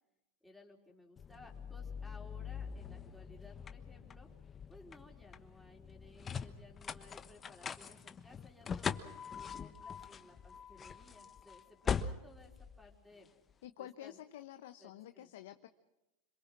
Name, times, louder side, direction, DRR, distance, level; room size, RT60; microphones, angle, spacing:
voice 1, 0.4-4.3 4.7-13.3 13.8-14.2 14.8-15.3, left 2 dB, ahead, -1 dB, 4.2 m, -59 dB
sound 1, 1.2-13.5, left 6 dB, 25° left, 1.2 m, -43 dB
voice 2, 13.6-15.7, left 12 dB, 75° left, 9 dB, 1.0 m, -49 dB
26.5 x 22.5 x 6.1 m, 0.95 s
hypercardioid pair, 110°, 0 cm